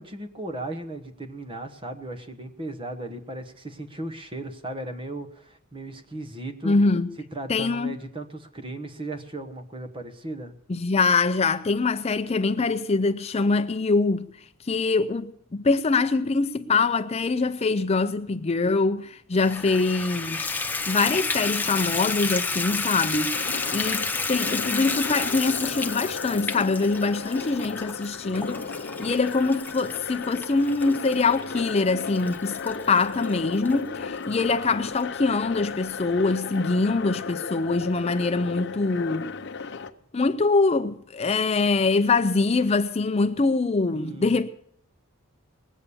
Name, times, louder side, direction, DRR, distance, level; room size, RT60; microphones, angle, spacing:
voice 1, 0.0-6.8 7.3-10.5 43.9-44.4, right 1 dB, 25° right, 1.1 m, -36 dB
voice 2, 6.6-7.1 7.5-7.9 10.7-14.3 14.7-20.5 20.9-28.6 29.0-39.3 40.1-44.5, left 3 dB, 30° left, 0.5 m, -24 dB
Water tap faucet / Bathtub (filling or washing), 19.4-33.8 34.3-34.4 34.9-35.0 35.3-35.4, left 4 dB, 10° left, 0.8 m, -31 dB
sound 1, 23.3-39.9, left 5 dB, 55° left, 0.8 m, -35 dB
20.5 x 8.4 x 7.0 m
head